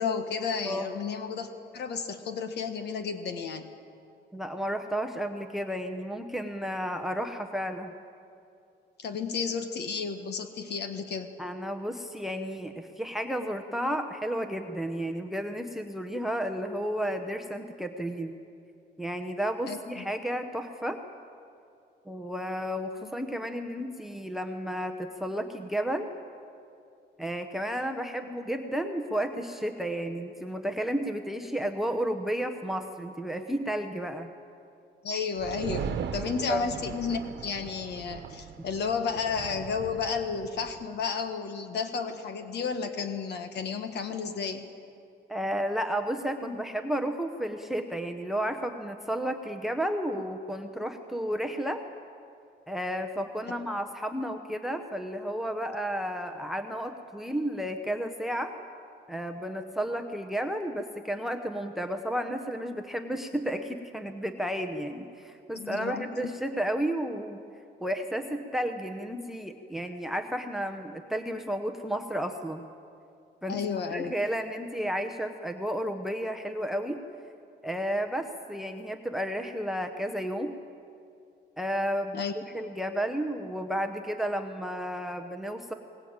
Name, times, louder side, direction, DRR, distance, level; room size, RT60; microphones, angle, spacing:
voice 1, 0.0-3.7 9.0-11.3 19.7-20.0 23.0-23.1 35.0-44.6 65.5-66.3 73.5-74.1 82.1-82.3, left 5 dB, 65° left, 8 dB, 1.4 m, -32 dB
voice 2, 4.3-7.9 11.4-18.4 19.0-21.0 22.0-26.1 27.2-34.3 36.2-36.7 45.3-51.8 52.7-58.5 59.1-67.4 67.8-72.6 73.4-73.6 73.9-77.0 77.6-80.5 81.6-85.7, equal, ahead, 7 dB, 0.8 m, -32 dB
sound 1, 35.4-40.8, right 8 dB, 70° right, 1.2 m, -39 dB
22.0 x 19.5 x 8.8 m, 2.5 s
cardioid pair, 165°, 19 cm